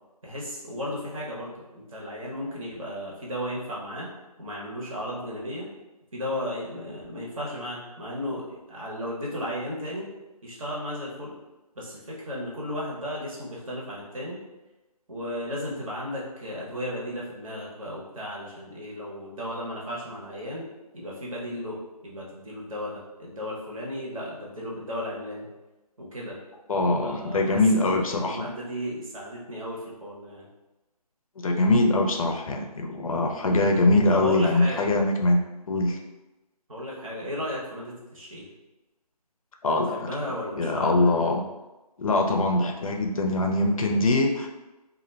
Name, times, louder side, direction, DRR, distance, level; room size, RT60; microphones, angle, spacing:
voice 1, 0.2-4.1 4.4-5.7 6.1-10.1 10.4-11.3 11.7-14.4 15.1-20.6 20.9-21.8 22.0-25.5 26.0-26.4 27.0-30.5 34.1-34.9 36.7-38.5 39.7-41.1, equal, 55° right, -4 dB, 0.9 m, -34 dB
voice 2, 26.7-28.4 31.4-35.4 35.7-36.0 39.6-40.1 40.6-41.4 42.0-44.5, left 2 dB, 60° left, 3 dB, 0.4 m, -23 dB
2.2 x 2.0 x 3.0 m, 1.1 s
figure-of-eight pair, 160°, 20 cm